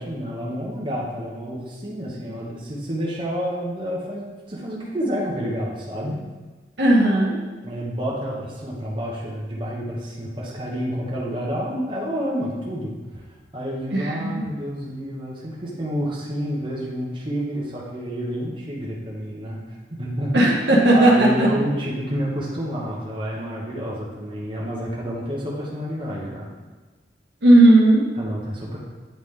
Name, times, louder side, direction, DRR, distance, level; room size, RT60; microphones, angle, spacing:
voice 1, 0.0-6.2 7.6-12.9 13.5-26.5 28.2-28.8, equal, 30° right, -5 dB, 1.1 m, -29 dB
voice 2, 6.8-7.3 13.9-14.4 20.3-21.6 27.4-28.0, right 1 dB, 75° right, -3 dB, 1.3 m, -15 dB
8.9 x 3.7 x 3.3 m, 1.3 s
head